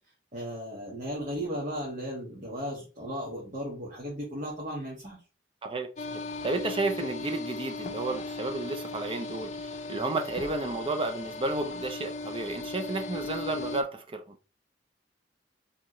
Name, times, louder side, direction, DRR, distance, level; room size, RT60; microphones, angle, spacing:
voice 1, 0.3-5.2, equal, 45° right, 1.7 m, -36 dB
voice 2, 5.6-14.4, right 2 dB, 30° right, 0.6 m, -32 dB
sound 1, 6.0-13.8, left 3 dB, 40° left, 0.6 m, -37 dB
4.7 x 3.6 x 3.1 m
head